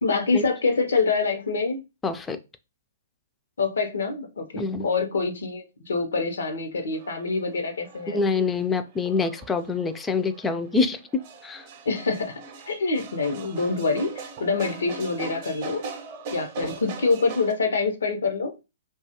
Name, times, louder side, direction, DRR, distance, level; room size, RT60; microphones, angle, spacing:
voice 1, 0.0-1.8 3.6-8.2 11.9-15.8 16.3-18.5, left 4 dB, 80° left, 0.7 m, -26 dB
voice 2, 2.0-2.4 4.5-4.9 8.1-11.7, left 4 dB, 10° left, 0.3 m, -26 dB
sound 1, 6.9-17.5, right 5 dB, 40° right, 0.6 m, -41 dB
2.7 x 2.3 x 2.8 m
hypercardioid pair, 140°, 0 cm